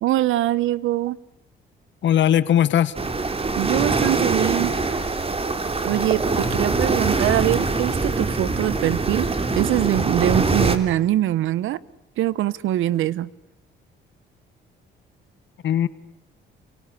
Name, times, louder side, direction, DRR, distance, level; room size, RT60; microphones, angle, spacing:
voice 1, 0.0-1.2 3.6-4.7 5.8-9.3 9.5-11.8 12.2-13.3, right 13 dB, 80° right, 1.1 m, -23 dB
voice 2, 2.0-2.9 6.4-6.6 15.6-15.9, left 10 dB, 70° left, 1.6 m, -19 dB
sound 1, 2.9-10.8, right 3 dB, 30° right, 3.3 m, -23 dB
29.5 x 23.5 x 8.4 m
cardioid pair, 90°, 20 cm